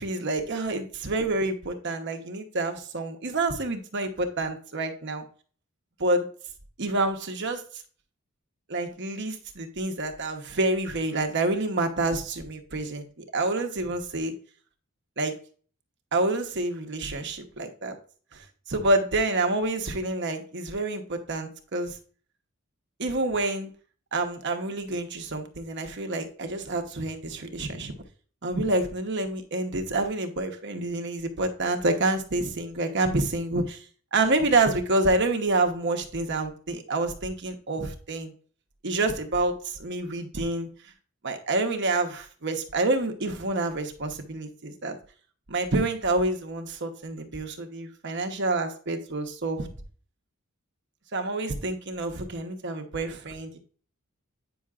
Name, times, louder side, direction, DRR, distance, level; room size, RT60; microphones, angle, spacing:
voice 1, 0.0-5.2 6.0-6.3 6.8-7.6 8.7-14.3 15.2-15.3 16.1-18.0 18.7-22.0 23.0-23.7 24.1-27.9 28.4-33.8 34.1-38.3 38.8-40.7 41.2-45.0 45.5-49.7 51.1-53.6, right 2 dB, 55° right, 5 dB, 1.0 m, -28 dB
9.1 x 5.6 x 2.4 m, 0.42 s
head